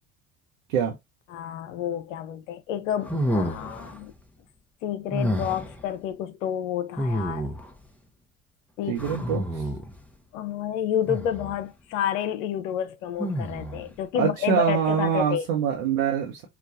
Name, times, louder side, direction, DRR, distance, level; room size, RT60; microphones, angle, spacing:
voice 1, 1.3-4.1 4.8-7.5 8.8-9.0 10.3-15.5, left 10 dB, 70° left, 0.6 m, -29 dB
sound 1, 3.0-4.0 5.1-5.8 7.0-7.8 9.0-10.0 11.1-11.6 13.2-13.9, equal, 5° left, 0.8 m, -29 dB
voice 2, 8.9-9.7 14.1-16.4, right 8 dB, 75° right, 0.9 m, -25 dB
4.8 x 2.2 x 2.6 m
figure-of-eight pair, 55°, 40 cm